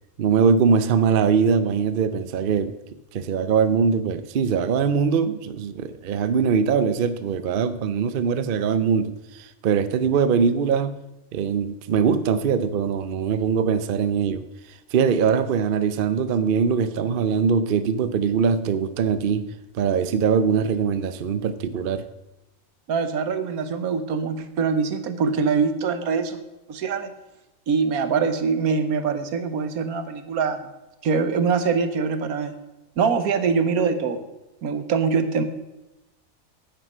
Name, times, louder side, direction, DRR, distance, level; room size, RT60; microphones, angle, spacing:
voice 1, 0.2-2.8 3.1-11.0 11.3-14.5 14.9-22.0, right 6 dB, 55° right, 13 dB, 0.6 m, -22 dB
voice 2, 22.9-26.4 26.7-27.1 27.7-30.6 31.0-32.5 33.0-34.3 34.6-35.4, right 5 dB, 85° right, 10 dB, 1.4 m, -23 dB
9.9 x 9.2 x 5.5 m, 0.98 s
omnidirectional pair, 1.5 m